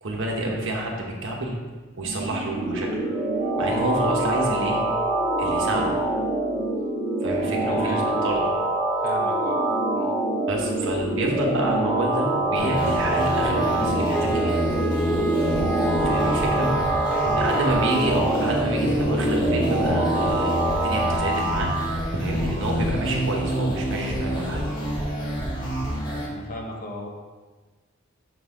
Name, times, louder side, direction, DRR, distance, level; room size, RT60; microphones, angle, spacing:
voice 1, 0.0-1.6 1.9-3.0 3.6-4.8 5.4-5.9 7.2-8.5 10.5-14.6 16.0-16.7 17.4-21.7 22.1-24.6, right 1 dB, 65° right, 0 dB, 1.2 m, -28 dB
sound 1, 2.0-21.9, right 2 dB, 45° right, 2.1 m, -25 dB
voice 2, 7.4-8.1 9.0-9.7 9.9-10.2 17.1-17.4 17.7-17.8 26.3-27.1, left 2 dB, 45° left, 0 dB, 1.0 m, -36 dB
sound 2, 12.5-26.3, equal, 20° left, 1.2 m, -28 dB
Wind instrument woodwind instrument, 14.1-18.3, right 3 dB, 5° left, 0.3 m, -31 dB
6.5 x 4.0 x 5.0 m, 1.3 s
head